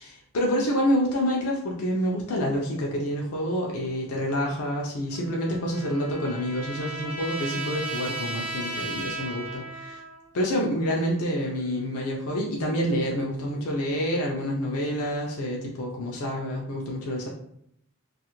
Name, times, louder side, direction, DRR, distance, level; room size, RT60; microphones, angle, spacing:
voice 1, 0.0-10.0 10.3-17.3, equal, 80° left, -2 dB, 0.5 m, -28 dB
Trumpet, 5.1-10.3, right 2 dB, 5° right, 0.4 m, -35 dB
2.4 x 2.4 x 2.9 m, 0.73 s
head